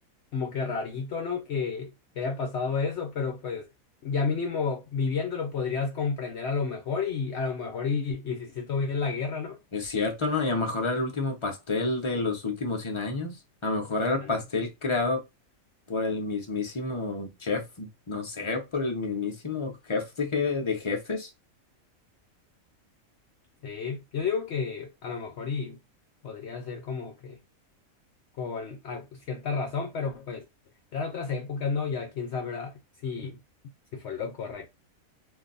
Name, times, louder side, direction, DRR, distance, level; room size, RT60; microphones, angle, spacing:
voice 1, 0.3-3.7 4.0-9.6 14.2-14.3 23.6-25.8 26.2-27.4 28.4-30.4 30.9-32.7 33.0-33.4 33.9-34.7, left 5 dB, 60° left, 0.8 m, -31 dB
voice 2, 9.7-13.4 13.6-15.2 15.9-21.3, left 3 dB, 35° left, 0.5 m, -29 dB
2.5 x 2.2 x 3.8 m
omnidirectional pair, 1.5 m